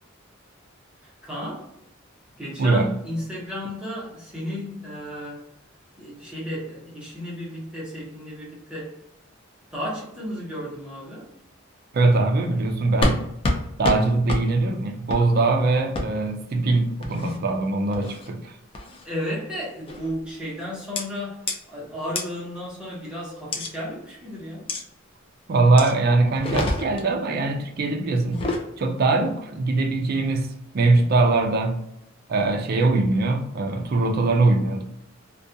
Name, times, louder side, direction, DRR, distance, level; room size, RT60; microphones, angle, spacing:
voice 1, 1.2-1.7 2.4-5.4 6.0-8.9 9.7-11.3 19.0-21.4 21.7-24.6, equal, 5° right, -7 dB, 0.8 m, -33 dB
voice 2, 2.6-3.0 11.9-13.3 13.8-18.6 25.5-28.5 28.8-31.8 32.3-34.8, right 3 dB, 50° right, 4 dB, 0.4 m, -22 dB
sound 1, 13.0-13.2 13.4-13.6 13.8-14.0 14.3-14.4 15.1-15.2 15.9-16.1 17.0-17.4 17.9-18.3 18.7-19.0 19.9-20.1 21.0-21.1 21.5-21.6 22.2-22.3 23.5-23.7 24.7-24.8 25.8-25.9 26.3-27.1 28.2-28.6, left 2 dB, 25° left, 0.3 m, -26 dB
2.3 x 2.3 x 2.6 m, 0.79 s
head